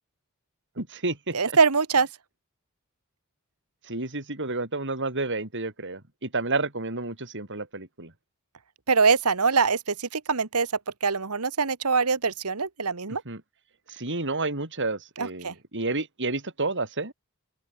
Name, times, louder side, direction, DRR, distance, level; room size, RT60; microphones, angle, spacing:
voice 1, 0.8-1.6 3.8-8.1 13.3-13.4 13.9-17.1, right 3 dB, 55° right, 5.5 m, -30 dB
voice 2, 1.3-2.1 8.9-10.7 11.0-13.2 15.2-15.5, right 5 dB, 85° right, 1.6 m, -23 dB
open air
head